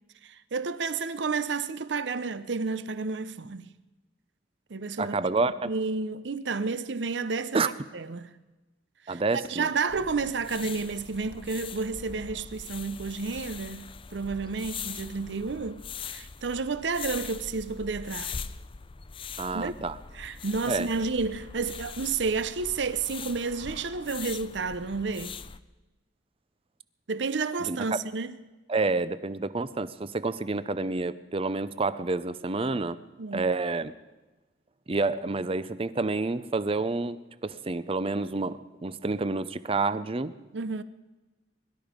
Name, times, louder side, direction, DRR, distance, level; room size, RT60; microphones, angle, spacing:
voice 1, 0.2-3.7 4.7-5.2 5.7-8.3 9.1-9.2 9.5-15.8 16.1-18.3 19.5-19.9 20.1-25.3 27.1-28.4 33.2-33.4 40.5-40.8, right 4 dB, 70° right, 0.7 m, -31 dB
voice 2, 5.0-5.7 7.5-7.7 9.1-9.7 19.4-20.0 20.7-20.9 27.6-28.0 28.7-33.0 33.3-33.9 34.9-40.3, right 3 dB, 30° right, 0.6 m, -29 dB
sound 1, 9.9-25.6, left 6 dB, 30° left, 0.5 m, -42 dB
22.0 x 12.0 x 5.2 m
head